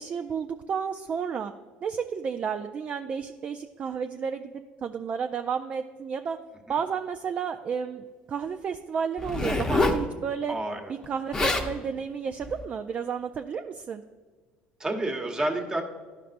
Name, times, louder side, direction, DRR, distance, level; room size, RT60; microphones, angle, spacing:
voice 1, 0.0-1.5 1.8-6.4 6.7-10.6 10.9-14.0, right 6 dB, 40° right, 6 dB, 0.3 m, -32 dB
Zipper (clothing), 9.2-10.0 11.0-11.1 11.3-11.7 12.4-12.6, left 2 dB, 20° left, 0.8 m, -26 dB
voice 2, 10.5-10.9 14.8-15.8, right 1 dB, 20° right, 2 dB, 1.1 m, -29 dB
12.0 x 5.3 x 2.6 m, 1.5 s
supercardioid pair, 105°, 4 cm